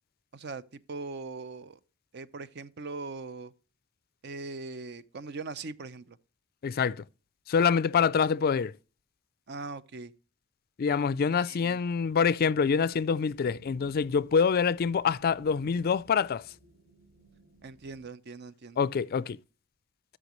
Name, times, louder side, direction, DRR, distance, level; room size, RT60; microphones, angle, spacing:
voice 1, 0.3-1.8 2.1-3.5 4.2-6.2 8.0-8.1 9.5-10.1 11.5-11.8 17.6-18.8, right 3 dB, 55° right, 0.6 m, -40 dB
voice 2, 6.6-7.0 7.5-8.7 10.8-16.5 18.8-19.4, left 6 dB, 45° left, 0.4 m, -26 dB
sound 1, 12.7-18.0, right 2 dB, 90° right, 4.7 m, -58 dB
13.0 x 6.1 x 3.0 m
head